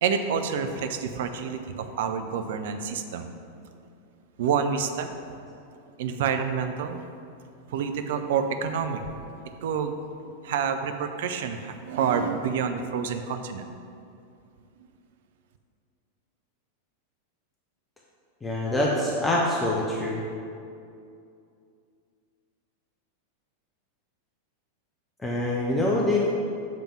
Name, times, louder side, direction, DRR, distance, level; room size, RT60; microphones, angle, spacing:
voice 1, 0.0-3.3 4.4-5.1 6.0-7.0 7.7-9.2 9.6-9.9 10.2-13.7, right 6 dB, 55° right, 7 dB, 0.5 m, -28 dB
voice 2, 18.4-20.2 25.2-26.2, left 1 dB, 15° left, -3 dB, 0.7 m, -25 dB
7.5 x 3.5 x 5.7 m, 2.5 s
figure-of-eight pair, 90°, 0 cm